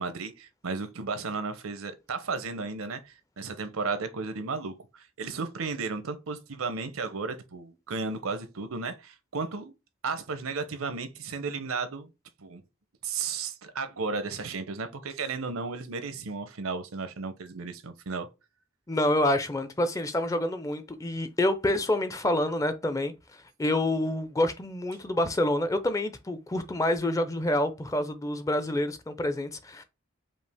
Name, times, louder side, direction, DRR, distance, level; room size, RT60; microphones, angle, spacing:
voice 1, 0.0-9.7 10.0-12.1 12.4-12.6 13.0-18.3, right 4 dB, 75° right, 0.7 m, -34 dB
voice 2, 18.9-23.1 23.6-29.8, left 1 dB, 15° left, 0.5 m, -27 dB
5.2 x 2.5 x 3.4 m
head